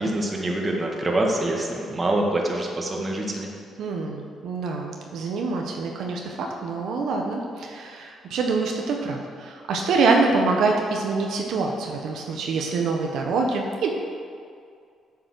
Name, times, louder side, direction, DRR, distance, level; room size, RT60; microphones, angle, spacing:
voice 1, 0.0-3.5, right 1 dB, 25° right, -1 dB, 1.8 m, -25 dB
voice 2, 3.8-13.9, right 4 dB, 75° right, 1 dB, 0.9 m, -25 dB
7.7 x 7.1 x 6.6 m, 2.3 s
cardioid pair, 90°, 0 cm